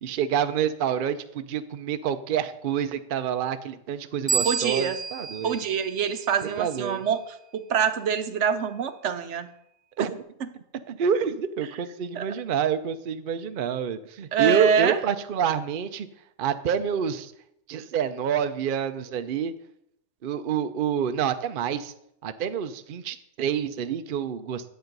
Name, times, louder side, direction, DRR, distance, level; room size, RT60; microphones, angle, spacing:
voice 1, 0.0-5.6 6.6-7.0 10.0-10.2 10.9-16.1 16.4-17.3 17.7-19.5 20.2-21.9 22.2-24.7, right 8 dB, 55° right, 9 dB, 0.7 m, -28 dB
sound 1, 4.3-6.8, right 5 dB, 10° right, 0.4 m, -31 dB
voice 2, 4.4-5.0 5.4-9.5 10.0-10.1 10.4-10.5 12.1-12.3 14.3-15.0, right 7 dB, 75° right, 10 dB, 1.0 m, -25 dB
10.5 x 7.8 x 5.3 m, 0.76 s
omnidirectional pair, 1.2 m